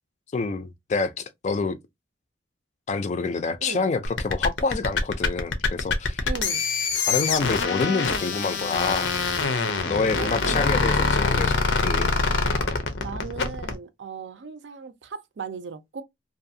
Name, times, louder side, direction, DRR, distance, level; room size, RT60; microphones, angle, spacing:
voice 1, 0.3-1.8 2.9-6.2 7.1-9.1 9.9-12.1, left 4 dB, 40° left, 0.3 m, -27 dB
sound 1, 4.0-13.8, left 4 dB, 85° left, 0.6 m, -24 dB
voice 2, 6.2-6.6 9.9-10.7 13.0-16.0, right 5 dB, 75° right, 0.5 m, -37 dB
2.6 x 2.3 x 2.6 m
head